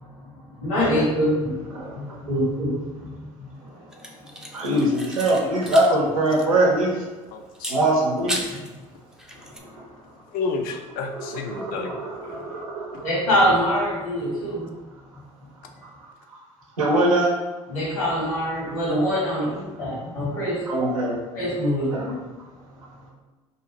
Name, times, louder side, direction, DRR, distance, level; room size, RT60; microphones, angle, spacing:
voice 1, 0.3-3.1 3.4-3.5 8.5-8.6 13.0-14.7 17.7-20.6 21.3-22.2, equal, 80° left, -5 dB, 1.2 m, -24 dB
sound 1, 3.9-5.9 6.2-6.3 7.5-8.7 9.1-9.6, equal, 5° right, 0.4 m, -34 dB
voice 2, 4.5-7.0 7.7-8.4 11.5-13.1 16.8-17.3 20.7-21.2 21.9-22.1, right 1 dB, 90° right, -3 dB, 0.7 m, -22 dB
voice 3, 7.3-7.9 10.3-11.9 12.2-12.4 12.9-13.0, left 4 dB, 55° left, 5 dB, 0.4 m, -31 dB
2.6 x 2.4 x 2.9 m, 1.2 s
hypercardioid pair, 65°, 17 cm